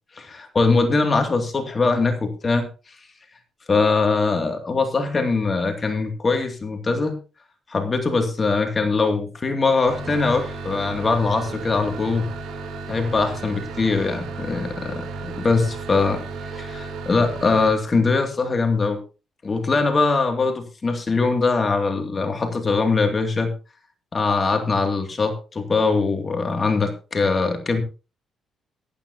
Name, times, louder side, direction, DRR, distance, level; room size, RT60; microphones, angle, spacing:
voice 1, 0.2-2.7 3.7-7.2 7.7-12.3 12.9-16.2 16.5-19.0 19.4-23.5 24.1-27.8, left 4 dB, 35° left, 5 dB, 2.3 m, -22 dB
sound 1, 9.8-17.7, right 4 dB, 75° right, 3.2 m, -34 dB
15.0 x 12.0 x 2.8 m, 0.32 s
cardioid pair, 90°, 0 cm